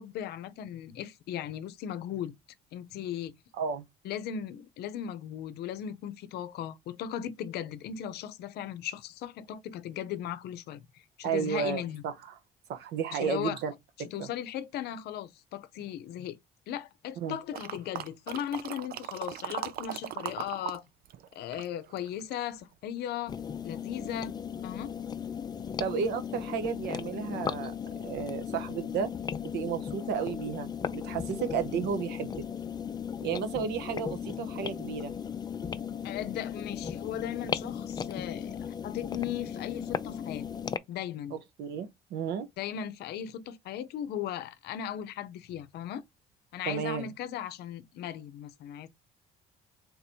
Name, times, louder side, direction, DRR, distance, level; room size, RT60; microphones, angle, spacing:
voice 1, 0.0-2.3 2.7-3.3 4.0-12.0 13.1-13.6 14.1-16.4 16.7-20.8 21.3-23.4 23.6-24.4 24.6-24.9 36.0-40.5 40.9-41.3 42.6-46.0 46.5-48.9, left 10 dB, 75° left, 0.6 m, -37 dB
voice 2, 11.2-12.1 12.7-13.7 14.2-14.3 17.2-17.4 25.8-27.7 28.0-29.1 29.5-32.4 33.2-35.1 41.6-42.5 46.7-47.1, right 7 dB, 80° right, 0.9 m, -32 dB
sound 1, 17.5-20.8 21.0-22.5 23.0-23.1, right 11 dB, 65° right, 0.5 m, -38 dB
sound 2, 23.3-40.8, left 7 dB, 25° left, 0.4 m, -36 dB
3.9 x 2.7 x 4.3 m
cardioid pair, 110°, 17 cm